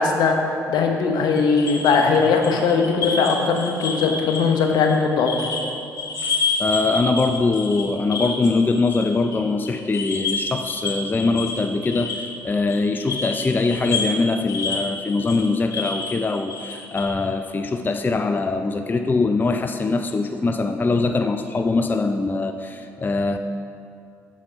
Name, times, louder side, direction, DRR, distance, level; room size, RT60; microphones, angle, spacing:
voice 1, 0.0-5.3, left 5 dB, 70° left, 3 dB, 1.0 m, -19 dB
sound 1, 1.3-5.7 5.9-9.4 9.7-17.1, left 4 dB, 50° left, 1.8 m, -29 dB
voice 2, 6.6-23.4, left 3 dB, 25° left, 7 dB, 0.4 m, -22 dB
7.4 x 6.7 x 5.2 m, 2.6 s
hypercardioid pair, 50°, 7 cm